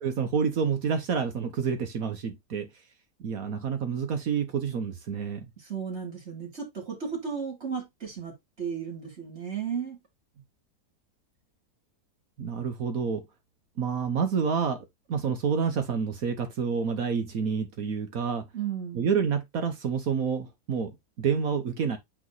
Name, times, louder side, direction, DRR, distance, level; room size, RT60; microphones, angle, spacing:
voice 1, 0.0-2.7 3.2-5.5 12.4-13.3 13.8-18.5 18.9-22.0, right 6 dB, 65° right, 1.4 m, -28 dB
voice 2, 5.6-10.0 18.5-19.1, right 7 dB, 45° right, 2.4 m, -34 dB
8.5 x 3.0 x 3.9 m
omnidirectional pair, 1.7 m